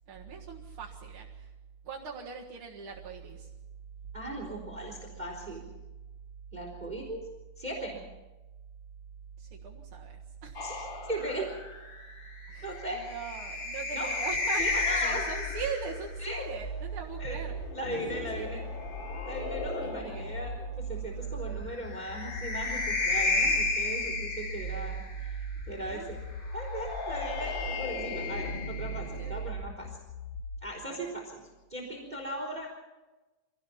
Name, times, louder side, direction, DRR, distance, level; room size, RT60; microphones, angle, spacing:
voice 1, 0.1-1.5 1.8-3.5 9.4-10.6 12.5-12.7 12.9-17.5 18.1-18.7 19.8-20.3 25.7-26.1 29.2-29.3 29.8-29.9 30.9-31.1, right 6 dB, 45° right, -3 dB, 2.2 m, -41 dB
voice 2, 4.1-5.7 6.5-7.2 7.6-8.0 10.6-10.8 11.0-11.5 12.6-13.0 13.9-14.1 14.6-15.2 16.2-16.5 17.2-17.4 17.7-18.6 19.2-26.2 26.5-30.0 30.6-31.4 31.7-32.7, right 1 dB, 10° right, 1 dB, 3.9 m, -38 dB
sound 1, 10.5-16.1 17.5-20.4 21.8-25.3 26.5-29.5, left 3 dB, 45° left, 0.6 m, -33 dB
sound 2, 14.6-30.6, right 1 dB, 25° left, 3.6 m, -39 dB
25.0 x 18.0 x 5.8 m, 1.1 s
omnidirectional pair, 3.8 m